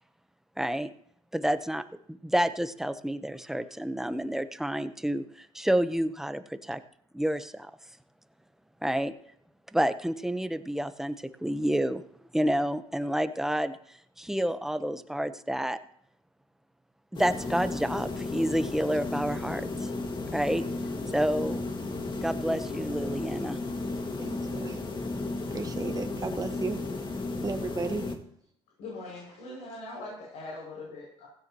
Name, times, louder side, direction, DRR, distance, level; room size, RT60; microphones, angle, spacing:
voice 1, 0.6-0.9 1.3-1.8 2.2-6.8 7.1-7.7 8.8-9.1 9.7-11.1 11.4-12.0 12.3-13.8 14.2-15.8 17.1-19.9 20.3-20.6 21.1-21.6 22.2-23.6, equal, 5° right, 10 dB, 1.0 m, -29 dB
sound 1, 17.1-28.2, left 3 dB, 40° left, 2.0 m, -34 dB
voice 2, 24.2-24.8 25.5-26.8 27.4-28.2, right 4 dB, 30° right, 6 dB, 1.4 m, -34 dB
voice 3, 28.8-31.3, left 2 dB, 85° left, -4 dB, 6.7 m, -41 dB
16.5 x 15.5 x 3.1 m, 0.68 s
supercardioid pair, 80°, 13 cm